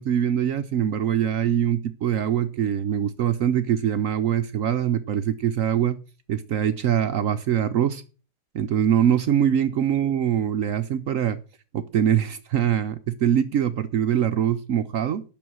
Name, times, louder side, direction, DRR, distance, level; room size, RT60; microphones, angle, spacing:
voice 1, 0.0-6.0 6.3-8.0 8.5-11.4 11.7-15.2, right 9 dB, 70° right, 0.8 m, -23 dB
9.0 x 6.3 x 7.6 m
omnidirectional pair, 2.1 m